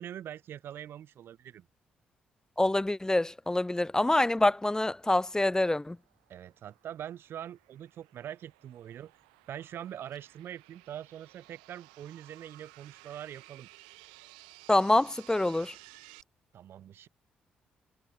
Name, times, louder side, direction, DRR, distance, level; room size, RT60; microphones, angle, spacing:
voice 1, 0.0-1.7 6.3-9.1 9.5-13.7 16.5-17.1, right 10 dB, 65° right, 2.1 m, -43 dB
voice 2, 2.6-6.0 14.7-15.7, left 1 dB, 15° left, 1.6 m, -26 dB
sound 1, 5.8-16.2, right 27 dB, 85° right, 3.3 m, -56 dB
hypercardioid pair, 45°, 4 cm